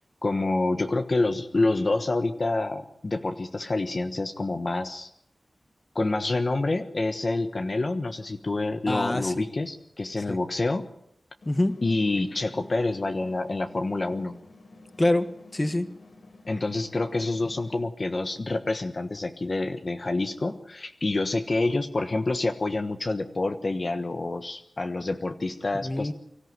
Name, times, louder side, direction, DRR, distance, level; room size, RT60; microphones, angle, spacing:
voice 1, 0.2-5.1 5.9-10.9 11.8-14.3 16.5-26.1, left 2 dB, 50° left, 6 dB, 1.3 m, -27 dB
voice 2, 8.9-9.4 10.3-10.4 11.4-11.8 15.0-15.9 25.8-26.1, left 1 dB, 30° left, 10 dB, 1.6 m, -25 dB
sound 1, 11.4-17.9, left 2 dB, 75° left, 3.6 m, -51 dB
24.5 x 14.0 x 9.6 m, 0.76 s
cardioid pair, 55°, 0 cm